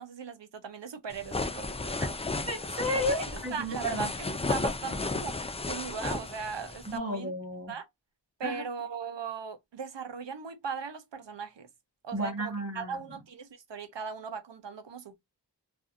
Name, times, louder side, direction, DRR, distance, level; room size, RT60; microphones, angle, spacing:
voice 1, 0.0-2.0 3.2-5.4 5.6-7.3 7.7-7.9 8.4-11.7 12.0-15.2, right 6 dB, 80° right, 0.7 m, -38 dB
sound 1, 1.1-7.0, left 3 dB, 15° left, 0.3 m, -34 dB
voice 2, 2.5-4.1 6.9-7.7 8.4-8.6 12.1-13.0, equal, 35° right, 1.1 m, -33 dB
2.5 x 2.5 x 2.5 m
wide cardioid pair, 45°, 43 cm